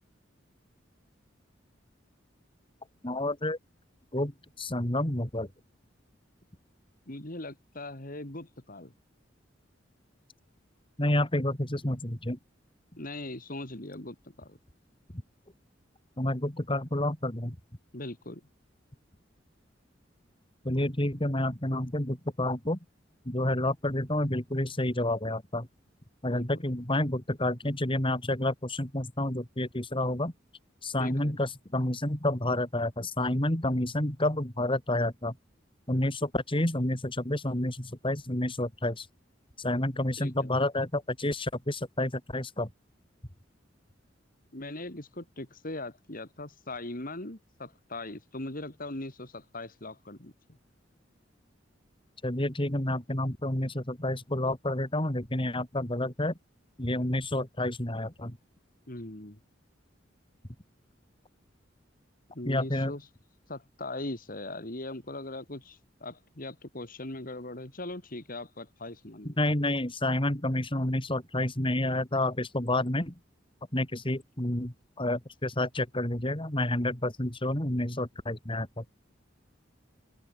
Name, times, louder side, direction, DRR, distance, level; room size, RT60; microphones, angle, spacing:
voice 1, 3.0-3.6 4.1-5.5 11.0-12.4 15.1-15.2 16.2-17.6 20.6-22.8 23.3-25.7 26.2-30.3 30.8-35.3 35.9-39.1 39.6-42.7 52.2-56.4 56.8-58.4 62.5-62.9 69.3-73.1 73.7-78.8, left 1 dB, 30° left, 3.6 m, -29 dB
voice 2, 7.1-8.9 13.0-14.6 17.9-18.4 26.3-26.5 31.0-31.4 40.2-40.5 44.5-50.3 58.9-59.4 62.3-63.0 63.5-69.4, left 2 dB, 50° left, 3.5 m, -40 dB
open air
head